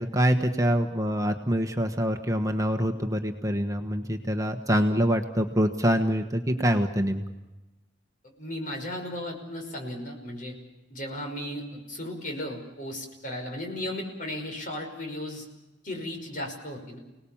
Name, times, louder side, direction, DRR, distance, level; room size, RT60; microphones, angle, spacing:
voice 1, 0.0-7.2, equal, 20° right, 5 dB, 1.3 m, -25 dB
voice 2, 8.4-10.6 10.9-15.5 15.8-17.0, left 1 dB, 45° left, 3 dB, 5.6 m, -35 dB
30.0 x 19.0 x 7.3 m, 1.1 s
head